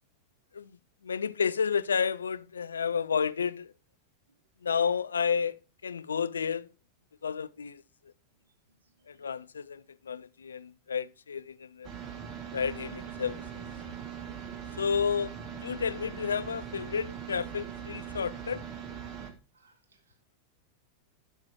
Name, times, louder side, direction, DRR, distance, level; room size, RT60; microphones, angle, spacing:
voice 1, 1.0-3.7 4.6-6.7 7.2-7.8 9.1-11.9 12.5-13.6 14.8-18.6, left 6 dB, 70° left, 0.3 m, -31 dB
voice 2, 8.8-9.3 19.5-20.4, right 3 dB, 70° right, 0.7 m, -68 dB
sound 1, 11.8-19.3, right 8 dB, 30° right, 1.3 m, -41 dB
12.0 x 6.1 x 3.0 m
figure-of-eight pair, 90°, 0 cm